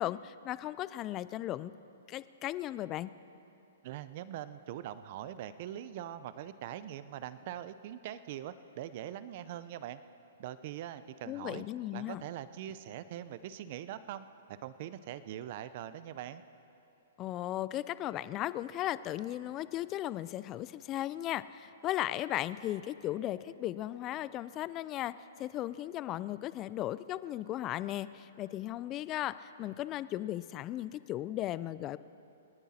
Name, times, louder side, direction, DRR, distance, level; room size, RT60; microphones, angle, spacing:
voice 1, 0.0-1.7 2.1-3.1 11.3-12.2 17.2-32.0, left 13 dB, 25° left, 16 dB, 0.4 m, -36 dB
voice 2, 3.8-10.0 10.4-11.6 11.9-14.3 14.6-16.4, right 11 dB, 45° right, 13 dB, 0.6 m, -42 dB
28.0 x 10.0 x 4.3 m, 2.9 s
hypercardioid pair, 150°, 0 cm